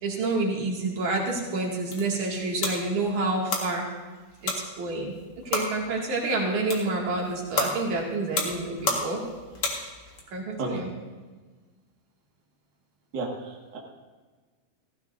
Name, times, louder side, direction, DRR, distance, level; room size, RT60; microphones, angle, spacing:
voice 1, 0.0-3.9 4.4-5.1 5.4-9.2 10.3-10.9, right 2 dB, 50° right, -3 dB, 3.1 m, -28 dB
sound 1, 1.6-10.2, left 3 dB, 70° left, 1.3 m, -33 dB
voice 2, 10.6-11.0 13.1-13.8, right 2 dB, 85° right, -2 dB, 0.9 m, -33 dB
16.5 x 15.5 x 2.7 m, 1.4 s
omnidirectional pair, 5.3 m